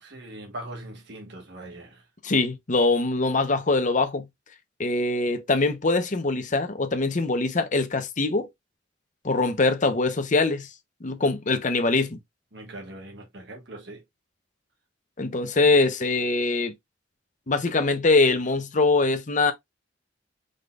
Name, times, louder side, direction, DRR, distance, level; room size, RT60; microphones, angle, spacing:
voice 1, 0.0-2.0 12.5-14.0, right 1 dB, 65° right, 1.6 m, -41 dB
voice 2, 2.2-4.3 4.8-8.5 9.2-10.7 11.0-12.2 15.2-16.7 17.5-19.5, left 3 dB, 45° left, 0.9 m, -23 dB
5.1 x 4.1 x 2.4 m
head